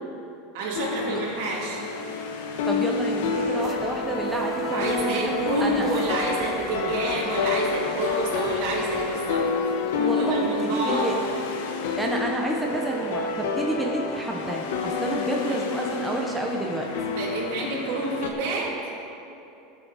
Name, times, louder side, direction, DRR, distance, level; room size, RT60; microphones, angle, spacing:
voice 1, 0.5-1.8 4.7-9.5 10.1-11.1 15.5-15.6 17.1-18.7, right 3 dB, 65° right, -3 dB, 2.6 m, -29 dB
sound 1, 0.7-18.3, left 4 dB, 80° left, 1.1 m, -28 dB
voice 2, 2.7-5.9 9.9-11.2 12.0-16.9, right 1 dB, 5° right, -1 dB, 0.7 m, -29 dB
sound 2, 3.6-11.6, left 3 dB, 25° left, 0.8 m, -47 dB
17.5 x 7.1 x 4.1 m, 2.8 s
supercardioid pair, 165°, 0 cm